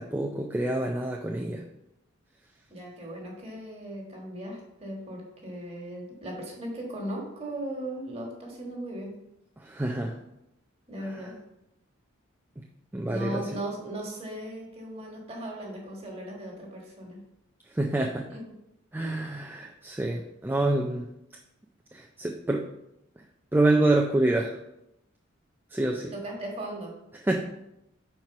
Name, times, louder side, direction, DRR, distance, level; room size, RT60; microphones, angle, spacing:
voice 1, 0.0-1.6 9.6-10.2 11.0-11.3 12.6-12.7 12.9-13.5 17.7-18.3 18.9-21.1 21.9-22.7 23.2-23.3 23.5-24.6 25.7-26.1 27.2-27.4, right 2 dB, 10° right, 0 dB, 0.3 m, -27 dB
voice 2, 2.7-9.1 10.9-11.3 13.1-17.2 18.3-18.4 19.0-19.1 26.2-26.9, right 1 dB, 30° right, 0 dB, 1.6 m, -37 dB
4.6 x 4.4 x 5.8 m, 0.85 s
head